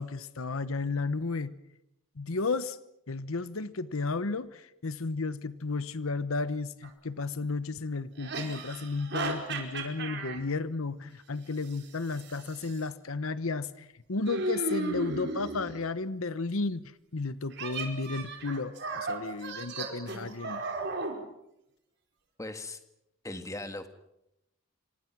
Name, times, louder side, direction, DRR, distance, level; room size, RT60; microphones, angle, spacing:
voice 1, 0.0-1.5 2.2-2.8 3.1-20.6, left 3 dB, 75° left, 14 dB, 0.9 m, -33 dB
sound 1, 6.8-6.9 8.2-10.4 11.6-12.8 14.3-15.8 17.5-21.2, right 3 dB, 55° right, 4.9 m, -35 dB
voice 2, 22.4-22.8 23.2-23.9, left 2 dB, 15° left, 8 dB, 1.7 m, -38 dB
28.0 x 25.5 x 6.0 m, 0.83 s
head